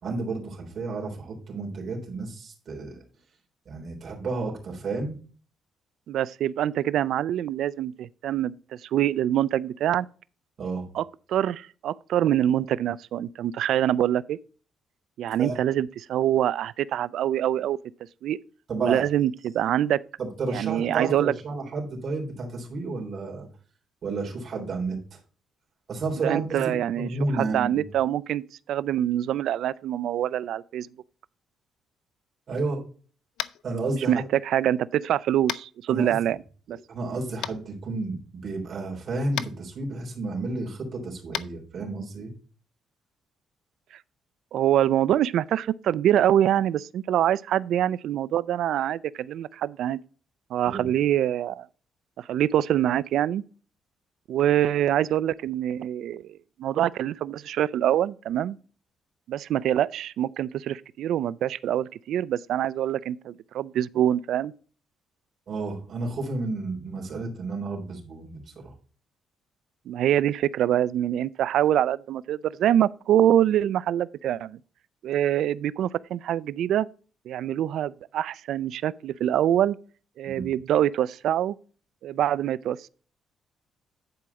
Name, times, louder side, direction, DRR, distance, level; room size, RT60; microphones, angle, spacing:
voice 1, 0.0-3.0 3.7-5.2 10.6-10.9 15.4-15.6 18.7-19.0 20.2-23.5 24.0-25.2 25.9-27.9 32.5-32.8 33.6-34.2 35.9-36.2 36.9-42.3 50.7-50.9 65.5-68.7 80.2-80.5, right 3 dB, 55° right, 3.5 m, -31 dB
voice 2, 6.1-10.1 10.9-11.0 11.3-14.4 15.2-17.8 18.2-18.4 18.8-20.0 20.5-21.3 26.2-28.4 28.7-30.9 34.1-36.4 36.7-36.8 44.5-50.0 50.5-51.7 52.2-53.4 54.3-58.6 59.3-64.5 69.9-74.6 75.0-76.9 77.3-79.8 80.2-81.6 82.0-82.9, right 11 dB, 75° right, 0.4 m, -25 dB
Tap, 33.4-33.6 35.5-35.6 37.4-37.5 39.3-39.5 41.3-41.5, left 12 dB, 85° left, 0.4 m, -31 dB
10.5 x 4.8 x 4.0 m
cardioid pair, 90°, 0 cm